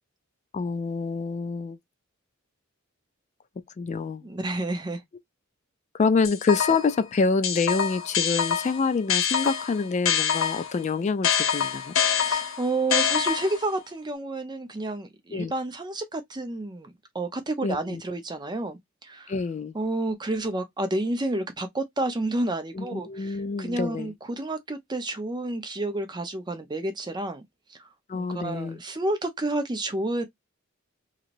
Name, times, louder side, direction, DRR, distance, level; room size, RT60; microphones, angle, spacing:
voice 1, 0.5-1.8 3.8-4.3 5.9-11.9 15.3-15.5 17.6-18.0 19.3-19.7 22.7-24.1 28.1-28.8, left 4 dB, 35° left, 0.3 m, -26 dB
voice 2, 4.2-5.0 12.2-19.3 19.7-27.4 27.7-27.9 28.1-30.3, right 2 dB, 20° right, 0.6 m, -30 dB
sound 1, 6.2-7.0 7.4-10.8 11.2-13.7, left 8 dB, 70° left, 0.8 m, -25 dB
2.9 x 2.7 x 2.5 m
head